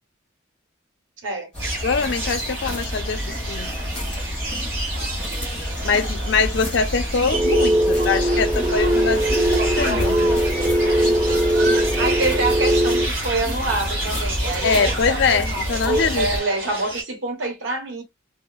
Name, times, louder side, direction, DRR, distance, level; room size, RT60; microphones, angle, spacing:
sound 1, 1.5-16.4, left 1 dB, 5° left, 1.4 m, -28 dB
sound 2, 1.6-17.0, right 2 dB, 55° right, 1.1 m, -30 dB
voice 1, 1.8-3.7 5.8-10.3 14.6-16.3, left 5 dB, 60° left, 0.4 m, -23 dB
sound 3, 7.3-13.1, right 1 dB, 15° right, 0.5 m, -20 dB
voice 2, 12.0-14.9 15.8-18.0, right 2 dB, 80° right, 0.9 m, -26 dB
2.9 x 2.0 x 2.3 m
head